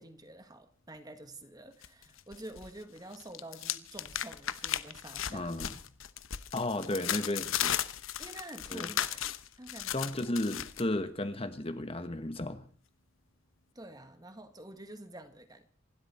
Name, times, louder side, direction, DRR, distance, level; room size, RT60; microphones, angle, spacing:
voice 1, 0.0-5.5 8.2-9.3 9.6-10.1 13.7-15.7, right 1 dB, 20° right, 1.7 m, -48 dB
sound 1, 1.8-2.7 3.0-10.8, left 10 dB, 85° left, 1.0 m, -36 dB
voice 2, 5.3-5.7 6.5-7.8 8.7-8.9 9.9-12.6, left 1 dB, 30° left, 1.2 m, -34 dB
27.0 x 12.5 x 4.3 m
head